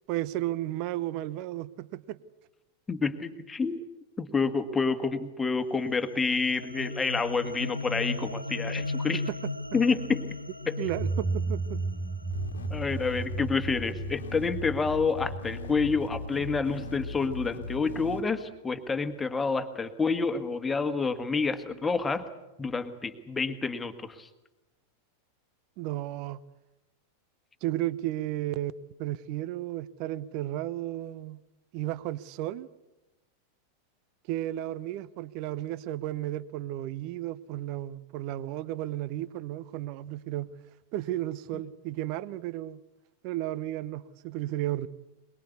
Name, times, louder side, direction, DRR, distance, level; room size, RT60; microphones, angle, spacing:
voice 1, 0.1-2.2 9.1-9.5 10.8-11.8 25.8-26.4 27.6-28.7 29.0-31.4 31.7-32.7 34.3-40.5 40.9-42.8 43.2-44.9, right 14 dB, 45° right, 20 dB, 0.8 m, -33 dB
voice 2, 2.9-3.8 4.2-9.2 9.7-10.2 10.7-10.8 12.7-22.3 22.6-24.3, left 4 dB, 15° left, 8 dB, 1.7 m, -28 dB
sound 1, 5.7-14.2, left 3 dB, 90° left, 0.8 m, -37 dB
sound 2, 10.8-17.4, right 3 dB, 5° right, 1.4 m, -35 dB
sound 3, 12.3-18.2, left 3 dB, 65° left, 1.7 m, -39 dB
23.0 x 22.0 x 8.4 m, 1.0 s
figure-of-eight pair, 90°, 0 cm